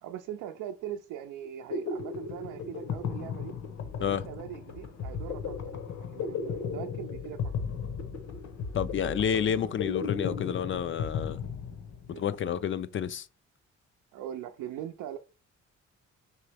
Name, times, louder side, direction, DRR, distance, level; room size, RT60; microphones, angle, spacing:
voice 1, 0.0-3.6 4.0-7.5 9.2-9.7 12.1-12.3 14.1-15.2, right 10 dB, 85° right, 0.5 m, -41 dB
sound 1, 1.4-12.2, left 5 dB, 65° left, 1.0 m, -35 dB
voice 2, 8.7-11.4 12.1-13.3, left 8 dB, 45° left, 0.4 m, -30 dB
4.7 x 3.0 x 3.3 m
cardioid pair, 90°, 30 cm